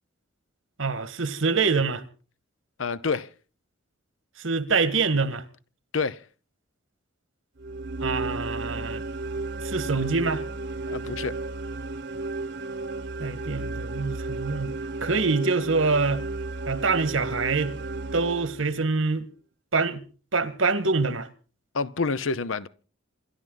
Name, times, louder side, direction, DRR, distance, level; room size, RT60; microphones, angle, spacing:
voice 1, 0.8-2.0 4.4-5.4 8.0-9.0 9.6-10.4 13.2-16.2 16.7-17.8 18.1-19.2 19.7-20.0 20.3-21.3, right 4 dB, 80° right, 1.6 m, -25 dB
voice 2, 2.8-3.3 5.9-6.2 10.9-11.4 21.7-22.7, left 4 dB, 80° left, 0.8 m, -28 dB
sound 1, 7.6-18.9, right 2 dB, 55° right, 1.1 m, -33 dB
28.0 x 12.5 x 3.9 m
head